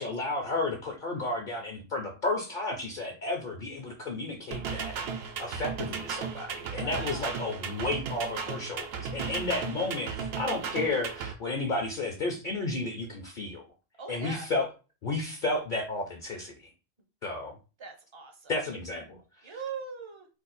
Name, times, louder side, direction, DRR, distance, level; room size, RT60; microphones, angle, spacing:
voice 1, 0.0-13.6 14.1-14.7 15.0-16.7 17.2-17.6 18.5-19.6, left 2 dB, 55° left, 2 dB, 0.6 m, -32 dB
sound 1, 4.5-11.3, right 6 dB, 65° right, 0.8 m, -35 dB
voice 2, 6.7-7.3 14.0-14.5 17.8-18.6 19.4-20.3, right 5 dB, 35° right, 3 dB, 0.5 m, -41 dB
2.6 x 2.3 x 4.0 m, 0.33 s
omnidirectional pair, 1.2 m